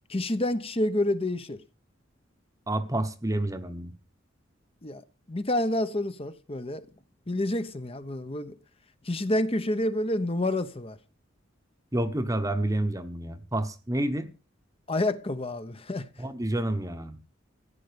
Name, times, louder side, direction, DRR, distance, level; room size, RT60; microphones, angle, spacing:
voice 1, 0.1-1.6 4.8-5.0 5.3-6.9 7.3-8.6 9.0-11.0 14.9-16.0, left 1 dB, 30° left, 1.1 m, -28 dB
voice 2, 2.7-3.9 11.9-14.3 16.2-17.2, right 1 dB, 15° right, 1.1 m, -29 dB
15.0 x 9.3 x 5.2 m
head